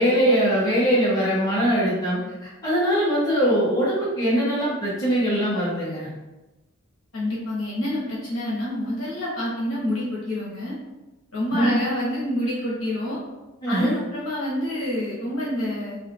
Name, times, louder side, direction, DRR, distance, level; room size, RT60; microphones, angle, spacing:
voice 1, 0.0-6.1 11.5-11.8 13.6-14.0, equal, 20° left, -10 dB, 1.1 m, -22 dB
voice 2, 7.1-10.7 11.3-13.2 13.7-16.0, left 1 dB, 65° left, -7 dB, 1.1 m, -28 dB
3.1 x 2.8 x 2.5 m, 1.1 s
head